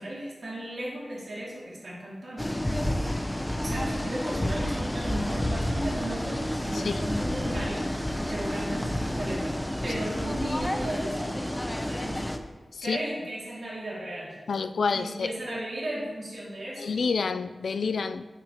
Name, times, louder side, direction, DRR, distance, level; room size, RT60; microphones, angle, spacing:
voice 1, 0.0-2.6 3.6-9.6 9.8-12.4 12.8-14.4 14.9-17.0, right 1 dB, 65° right, -6 dB, 2.4 m, -35 dB
sound 1, 2.4-12.4, left 1 dB, 10° left, 0.6 m, -30 dB
voice 2, 6.7-7.1 12.7-13.0 14.5-15.3 16.8-18.2, left 5 dB, 85° left, 11 dB, 0.3 m, -28 dB
8.8 x 6.5 x 2.9 m, 1.2 s
cardioid pair, 60°, 0 cm